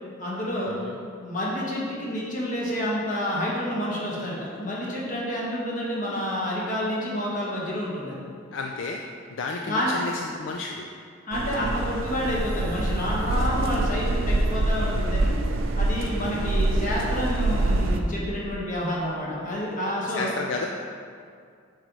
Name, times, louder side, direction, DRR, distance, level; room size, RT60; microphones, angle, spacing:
voice 1, 0.2-0.8 1.2-8.2 9.6-9.9 11.2-15.3 15.8-20.3, equal, 40° left, -5 dB, 1.4 m, -29 dB
voice 2, 8.5-9.0 9.3-10.9 14.1-14.6 16.2-16.6 20.1-20.7, left 3 dB, 65° left, 1 dB, 0.4 m, -33 dB
sound 1, 11.3-18.0, right 2 dB, 90° right, 0.5 m, -25 dB
7.4 x 5.2 x 3.1 m, 2.3 s
head